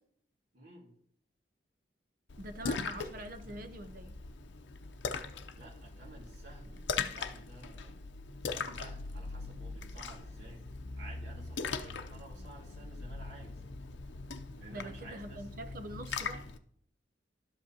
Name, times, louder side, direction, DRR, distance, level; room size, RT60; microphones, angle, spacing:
voice 1, 0.5-0.9 5.5-8.0 8.4-10.6 11.0-13.6 14.6-15.5, right 2 dB, 80° right, -5 dB, 2.2 m, -53 dB
Splash splatter, 2.3-16.6, left 4 dB, 85° left, 0.6 m, -40 dB
voice 2, 2.4-4.1 14.7-16.4, right 1 dB, 50° right, 8 dB, 0.8 m, -44 dB
12.0 x 7.8 x 2.9 m, 0.66 s
head